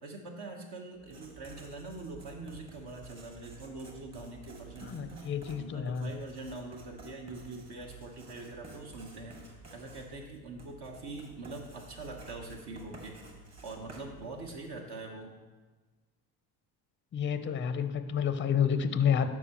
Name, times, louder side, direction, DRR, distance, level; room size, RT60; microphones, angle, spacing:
voice 1, 0.0-5.2 5.6-13.2 13.6-15.3, right 2 dB, 50° right, 1 dB, 1.2 m, -44 dB
Writing, 1.0-14.8, right 3 dB, 30° right, 1.8 m, -51 dB
voice 2, 4.8-6.1 17.1-19.3, left 7 dB, 25° left, 10 dB, 0.5 m, -29 dB
12.0 x 4.7 x 2.9 m, 1.3 s
hypercardioid pair, 65°, 48 cm